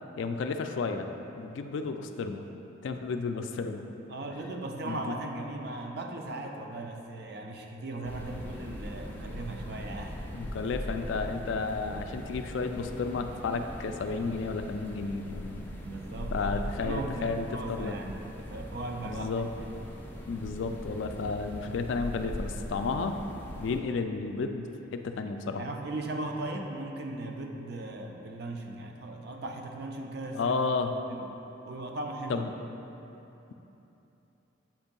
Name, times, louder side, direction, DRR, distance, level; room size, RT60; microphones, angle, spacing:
voice 1, 0.2-1.1 1.4-2.5 2.8-3.9 4.8-5.1 10.3-15.6 16.3-17.9 19.0-19.5 20.3-23.2 23.6-25.6 30.4-30.9 32.3-32.5, left 4 dB, 75° left, 6 dB, 0.3 m, -32 dB
voice 2, 4.1-10.2 15.8-16.5 16.8-19.3 25.6-31.4 31.7-32.5, right 2 dB, 55° right, 2 dB, 0.5 m, -38 dB
sound 1, 8.0-23.8, equal, 10° left, 0.5 m, -40 dB
7.3 x 2.6 x 5.2 m, 3.0 s
head